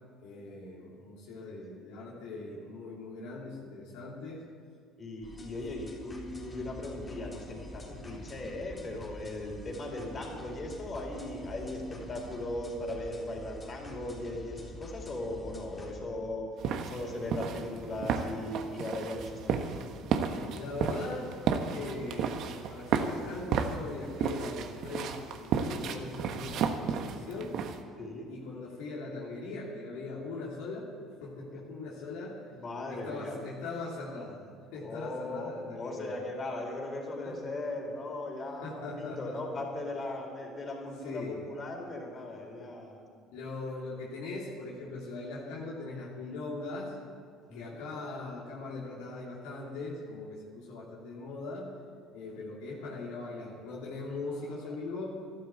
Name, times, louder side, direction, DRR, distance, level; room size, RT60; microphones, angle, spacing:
voice 1, 0.2-4.4 5.6-5.8 9.9-10.1 20.5-21.3 21.7-27.6 28.3-30.9 31.2-32.4 32.9-36.2 37.2-37.4 38.6-39.6 41.0-41.5 43.3-47.0 47.5-51.7 52.1-55.2, left 3 dB, 80° left, -4 dB, 2.8 m, -40 dB
voice 2, 5.0-16.5 16.8-19.7 28.0-28.3 31.5-31.6 32.6-33.4 34.8-43.0 47.5-47.8, left 2 dB, 40° left, 0 dB, 4.3 m, -38 dB
sound 1, 5.2-15.9, left 1 dB, 20° left, 3.8 m, -47 dB
sound 2, 16.6-27.8, right 6 dB, 65° right, 1.2 m, -32 dB
13.0 x 12.0 x 8.2 m, 2.1 s
supercardioid pair, 80°, 0 cm